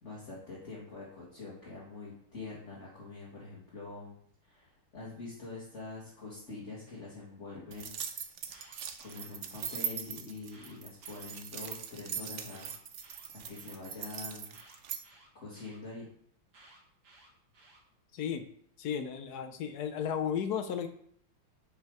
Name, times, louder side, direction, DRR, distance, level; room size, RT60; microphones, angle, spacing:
voice 1, 0.0-4.1 4.4-8.0 9.0-12.7 13.3-14.6 15.3-16.1, left 3 dB, 35° left, -6 dB, 2.1 m, -45 dB
sound 1, 7.7-15.0, right 7 dB, 75° right, 0.6 m, -40 dB
Alarm, 8.3-9.8 10.4-11.8 12.4-13.8 14.5-15.8 16.5-17.8, right 2 dB, 40° right, 1.8 m, -59 dB
voice 2, 18.1-18.5 18.8-20.9, left 8 dB, 65° left, 8 dB, 1.0 m, -34 dB
7.7 x 5.6 x 4.8 m, 0.65 s
omnidirectional pair, 2.2 m